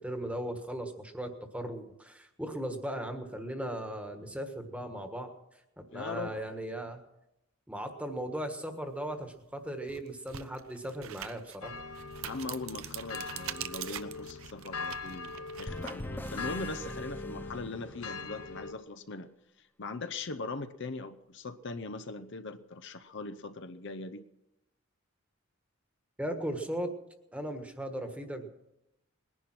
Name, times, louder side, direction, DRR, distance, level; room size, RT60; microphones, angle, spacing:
voice 1, 0.0-5.3 5.9-7.0 7.7-11.7 26.2-27.0 27.3-28.5, right 1 dB, 5° right, 5 dB, 1.4 m, -37 dB
voice 2, 5.9-6.5 12.2-19.3 19.6-24.3, left 3 dB, 55° left, 9 dB, 0.7 m, -40 dB
sound 1, 9.1-9.2 9.8-16.4, right 10 dB, 70° right, 0.7 m, -43 dB
sound 2, 11.6-18.7, left 4 dB, 90° left, 1.1 m, -42 dB
sound 3, 15.7-18.5, left 1 dB, 10° left, 0.5 m, -42 dB
20.5 x 11.0 x 6.1 m, 0.87 s
head